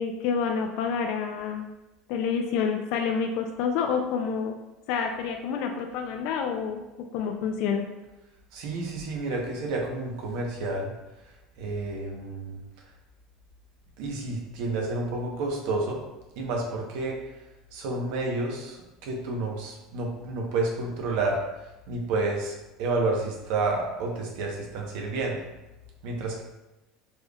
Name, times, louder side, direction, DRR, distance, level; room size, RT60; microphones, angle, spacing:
voice 1, 0.0-1.7 2.1-4.6 4.9-7.9, left 6 dB, 60° left, 4 dB, 0.4 m, -28 dB
voice 2, 8.5-10.9 11.6-12.6 14.0-16.0 16.4-17.2 17.7-21.4 21.9-25.4 26.0-26.4, right 2 dB, 70° right, 0 dB, 0.9 m, -30 dB
4.3 x 3.3 x 2.3 m, 1.0 s
cardioid pair, 145°, 0 cm